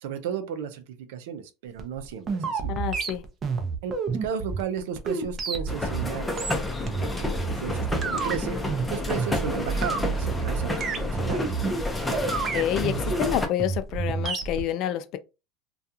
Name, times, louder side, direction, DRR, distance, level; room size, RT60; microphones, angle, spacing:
voice 1, 0.0-2.7 3.8-6.5 6.8-8.6 8.9-11.4, right 7 dB, 80° right, 0.5 m, -34 dB
sound 1, 1.8-14.6, right 4 dB, 35° right, 0.6 m, -30 dB
voice 2, 2.7-3.2 12.5-15.2, left 11 dB, 55° left, 0.4 m, -28 dB
sound 2, 5.7-13.5, left 2 dB, 10° left, 0.6 m, -30 dB
2.3 x 2.3 x 2.7 m
supercardioid pair, 105°, 0 cm